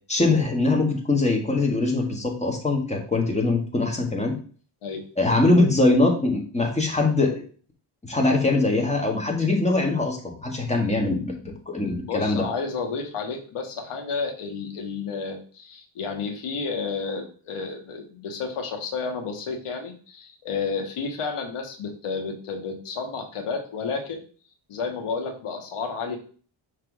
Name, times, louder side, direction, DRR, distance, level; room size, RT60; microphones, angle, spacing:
voice 1, 0.1-4.3 5.2-7.4 8.1-12.4, left 2 dB, 15° left, 1 dB, 1.6 m, -22 dB
voice 2, 11.9-24.2 24.7-26.2, left 4 dB, 85° left, 3 dB, 1.3 m, -31 dB
6.0 x 3.3 x 4.7 m, 0.41 s
cardioid pair, 100°, 49 cm